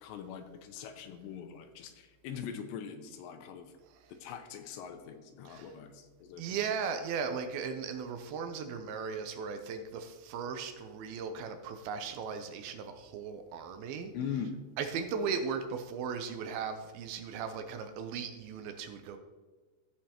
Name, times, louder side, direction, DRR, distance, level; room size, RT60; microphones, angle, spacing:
voice 1, 0.0-3.7 4.1-6.4 14.1-14.6, left 7 dB, 85° left, 6 dB, 2.8 m, -42 dB
voice 2, 6.4-14.1 14.8-19.2, right 6 dB, 80° right, 7 dB, 2.2 m, -37 dB
16.0 x 5.6 x 2.9 m, 1.3 s
omnidirectional pair, 5.1 m